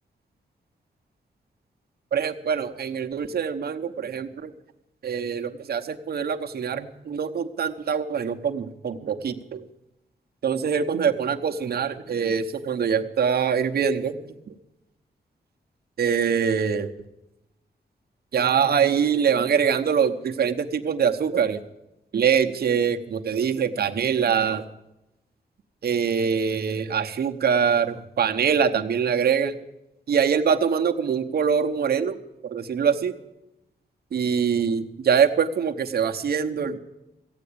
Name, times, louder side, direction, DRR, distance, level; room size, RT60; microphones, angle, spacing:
voice 1, 2.1-4.5 5.0-9.6 10.4-14.5 16.0-16.9 18.3-21.6 22.1-24.6 25.8-29.6 30.1-32.2 32.4-33.2 34.1-36.8, right 7 dB, 65° right, 5 dB, 0.9 m, -24 dB
15.0 x 9.1 x 8.6 m, 0.94 s
wide cardioid pair, 170°, 17 cm